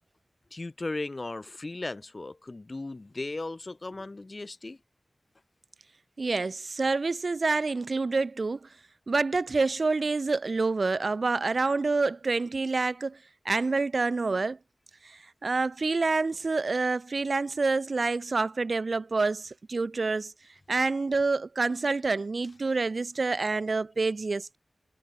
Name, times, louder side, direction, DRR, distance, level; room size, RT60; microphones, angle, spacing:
voice 1, 0.5-4.8, left 2 dB, 40° left, 3.0 m, -36 dB
voice 2, 6.2-8.7 9.1-13.2 13.4-14.6 15.0-20.3 20.7-24.6, right 3 dB, 60° right, 0.9 m, -27 dB
wide cardioid pair, 80°, 0 cm